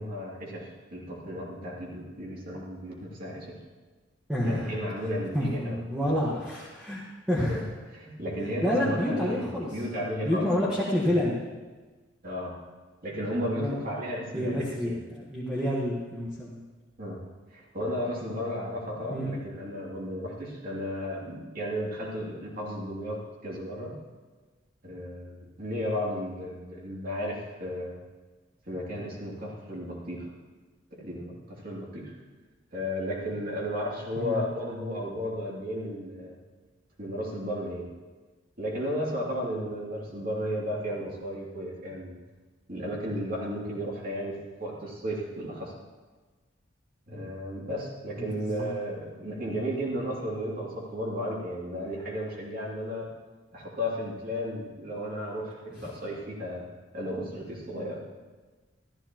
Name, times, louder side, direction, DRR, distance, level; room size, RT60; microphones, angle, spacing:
voice 1, 0.0-3.6 4.4-5.8 7.5-7.6 7.9-10.7 11.0-11.2 12.2-12.6 13.0-15.0 17.0-17.2 17.5-23.9 24.8-27.9 28.6-30.3 30.9-32.1 32.7-36.4 37.0-37.9 38.6-42.2 42.7-45.7 47.1-53.1 53.5-56.7 56.9-58.0, equal, 45° right, -4 dB, 2.7 m, -34 dB
voice 2, 4.3-5.1 5.3-7.6 8.6-9.7 10.2-11.4 13.5-13.8 14.3-16.6 19.1-19.4 34.2-34.4 48.2-48.7 55.8-55.9, left 1 dB, 5° right, -7 dB, 1.3 m, -29 dB
14.0 x 13.5 x 3.0 m, 1.3 s
head